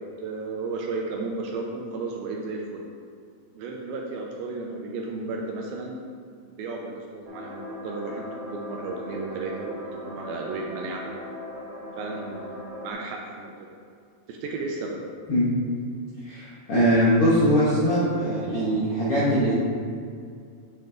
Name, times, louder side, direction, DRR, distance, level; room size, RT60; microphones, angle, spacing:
voice 1, 0.2-2.9 3.6-6.0 6.4-11.0 12.0-13.8 14.3-15.0, right 3 dB, 80° right, 0 dB, 2.2 m, -34 dB
sound 1, 7.2-12.9, equal, 40° right, 1.6 m, -39 dB
voice 2, 16.2-19.6, equal, 70° left, -10 dB, 1.3 m, -21 dB
9.2 x 5.8 x 3.6 m, 2.2 s
omnidirectional pair, 4.8 m